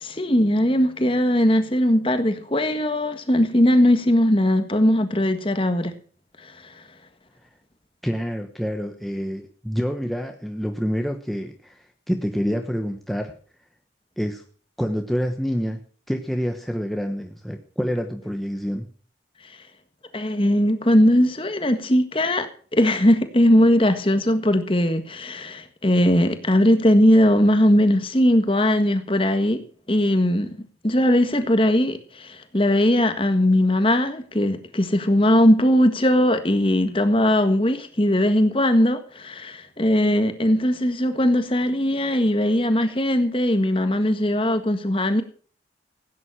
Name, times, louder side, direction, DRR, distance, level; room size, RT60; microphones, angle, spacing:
voice 1, 0.0-5.9 6.4-6.5 20.1-29.6 29.9-30.5 30.8-45.2, left 1 dB, 30° left, 1.6 m, -19 dB
voice 2, 8.0-13.3 14.2-14.4 14.8-15.8 16.1-18.9, equal, ahead, 1.0 m, -27 dB
16.0 x 9.6 x 6.2 m
head